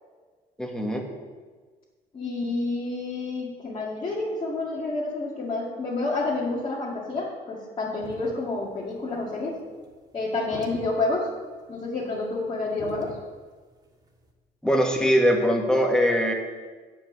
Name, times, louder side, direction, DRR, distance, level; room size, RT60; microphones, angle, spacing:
voice 1, 0.6-1.0 14.6-16.3, equal, 5° left, 1 dB, 1.6 m, -21 dB
voice 2, 2.1-9.6 10.1-11.3 11.7-13.2, left 3 dB, 30° left, -8 dB, 2.2 m, -29 dB
sound 1, 8.0-14.3, right 2 dB, 25° right, 1.8 m, -44 dB
8.9 x 5.4 x 7.4 m, 1.4 s
cardioid pair, 110°, 17 cm